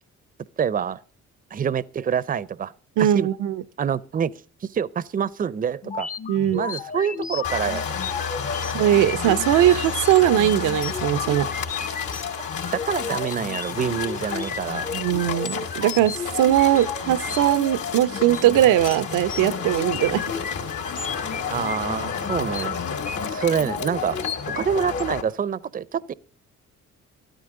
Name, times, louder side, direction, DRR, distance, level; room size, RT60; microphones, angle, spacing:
voice 1, 0.6-1.0 1.5-2.7 3.0-3.3 3.8-4.3 4.6-6.1 6.5-8.0 8.6-8.7 12.4-14.9 21.5-22.8 23.3-24.2 24.6-26.1, right 7 dB, 30° right, 0.5 m, -26 dB
voice 2, 3.0-3.6 6.3-6.7 8.7-11.5 14.9-20.3, right 12 dB, 85° right, 0.6 m, -20 dB
sound 1, 5.8-25.0, left 6 dB, 25° left, 0.6 m, -34 dB
sound 2, 7.4-25.2, left 6 dB, 80° left, 3.0 m, -31 dB
14.0 x 13.0 x 3.7 m
cardioid pair, 90°, 30 cm